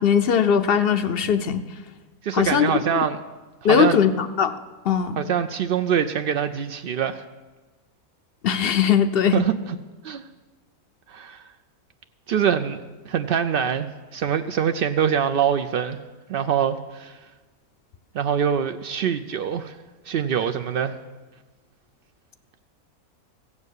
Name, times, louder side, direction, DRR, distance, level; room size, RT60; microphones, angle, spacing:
voice 1, 0.0-1.6 2.3-2.7 3.6-4.5 4.9-5.2 8.4-9.4, left 8 dB, 65° left, 10 dB, 0.6 m, -20 dB
voice 2, 2.2-3.2 3.6-4.0 5.2-7.2 9.3-9.8 10.0-10.2 11.1-11.4 12.3-16.0 16.3-17.2 18.1-19.8 20.1-21.0, right 8 dB, 85° right, 8 dB, 0.5 m, -24 dB
15.5 x 7.2 x 8.1 m, 1.3 s
omnidirectional pair, 1.5 m